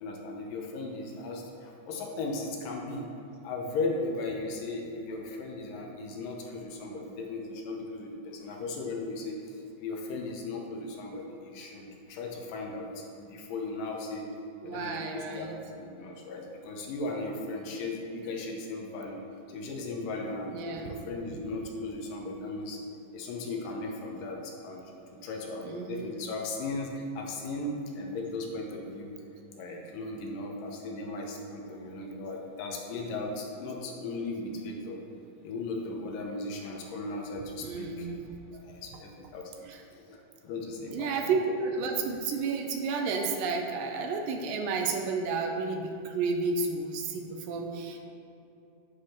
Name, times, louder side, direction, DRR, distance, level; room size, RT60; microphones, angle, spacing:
voice 1, 0.0-3.1 3.4-14.3 14.6-15.5 15.7-19.2 19.5-22.8 23.1-24.8 25.2-29.1 29.6-35.0 35.4-38.1 38.5-39.6 39.9-40.2 40.4-41.3, left 2 dB, 75° left, 0 dB, 2.5 m, -37 dB
voice 2, 14.6-15.6 20.5-20.9 25.6-26.1 37.6-38.3 39.7-39.8 40.9-48.0, right 4 dB, 80° right, 4 dB, 2.2 m, -31 dB
9.6 x 4.8 x 4.4 m, 2.8 s
omnidirectional pair, 4.0 m